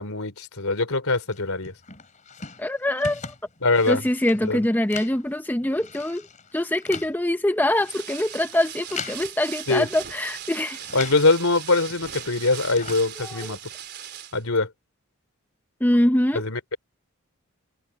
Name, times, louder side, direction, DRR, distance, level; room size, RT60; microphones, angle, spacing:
voice 1, 0.0-1.7 3.6-4.0 4.5-4.6 9.7-9.9 10.9-13.6 14.3-14.7 16.3-16.8, left 3 dB, 80° left, 3.1 m, -23 dB
sound 1, 1.3-11.3 11.6-13.7, left 5 dB, 35° left, 3.6 m, -41 dB
voice 2, 2.6-3.3 3.9-6.3 6.5-10.8 13.2-13.5 15.8-16.4, left 1 dB, 10° left, 0.6 m, -24 dB
sound 2, 7.7-14.4, right 10 dB, 50° right, 3.8 m, -39 dB
head